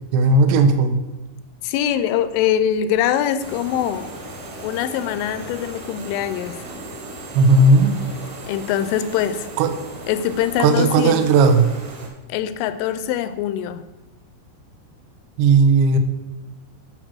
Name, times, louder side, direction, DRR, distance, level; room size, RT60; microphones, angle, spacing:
voice 1, 0.1-1.0 7.3-8.0 9.6-9.8 10.6-11.7 15.4-16.0, right 3 dB, 85° right, 7 dB, 2.3 m, -15 dB
voice 2, 1.6-4.1 4.6-6.6 8.5-9.5 10.1-11.3 12.3-13.8, left 10 dB, 85° left, 12 dB, 2.9 m, -23 dB
sound 1, 3.4-12.1, right 1 dB, 50° right, 1.8 m, -37 dB
9.1 x 6.1 x 6.2 m, 1.1 s
omnidirectional pair, 5.8 m